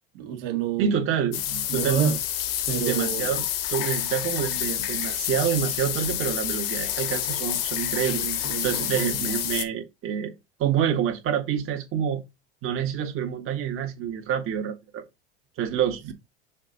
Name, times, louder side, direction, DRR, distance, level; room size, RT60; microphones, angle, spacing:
voice 1, 0.1-1.0 1.7-2.2 2.7-3.3 8.1-9.1, right 9 dB, 70° right, 2.0 m, -28 dB
voice 2, 0.8-2.0 2.8-8.2 8.6-10.3 10.6-12.2 12.6-15.0 15.6-16.1, right 8 dB, 45° right, 1.7 m, -27 dB
sound 1, 1.3-9.6, left 12 dB, 70° left, 1.4 m, -28 dB
6.4 x 4.2 x 3.9 m
hypercardioid pair, 85°, 30 cm